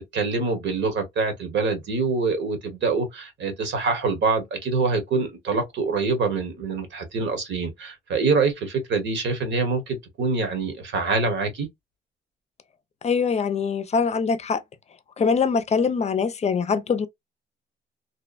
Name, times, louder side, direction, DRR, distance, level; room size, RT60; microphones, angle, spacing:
voice 1, 0.0-11.7, right 4 dB, 65° right, 1.1 m, -25 dB
voice 2, 13.0-14.6 15.2-17.1, left 5 dB, 35° left, 0.5 m, -23 dB
2.7 x 2.1 x 2.4 m
cardioid pair, 90°, 20 cm